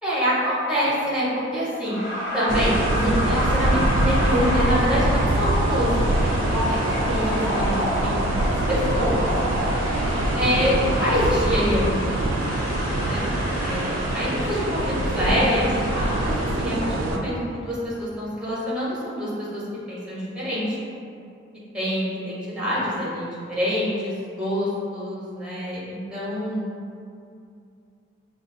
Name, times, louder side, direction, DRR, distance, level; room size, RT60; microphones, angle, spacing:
voice 1, 0.0-2.0 2.3-9.3 10.4-12.3 13.0-13.2 13.6-19.6 19.9-20.8 21.7-26.6, equal, 5° right, -9 dB, 1.1 m, -26 dB
sound 1, 1.8-16.6, equal, 55° left, 1.2 m, -29 dB
sound 2, 2.5-17.2, right 1 dB, 85° right, 0.4 m, -24 dB
5.9 x 2.1 x 2.6 m, 2.4 s
head